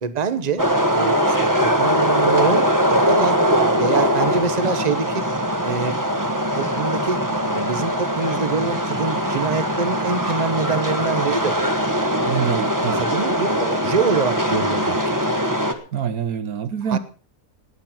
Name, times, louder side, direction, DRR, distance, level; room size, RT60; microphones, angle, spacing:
voice 1, 0.0-3.4 3.7-5.2 5.6-5.9 6.6-7.2 7.5-11.6 12.9-15.0 15.3-15.4 16.9-17.0, right 5 dB, 30° right, 1.2 m, -25 dB
sound 1, 0.6-15.7, equal, 15° right, 1.4 m, -21 dB
voice 2, 12.2-13.0 15.9-17.0, right 8 dB, 75° right, 1.5 m, -25 dB
19.5 x 8.7 x 5.9 m
omnidirectional pair, 1.6 m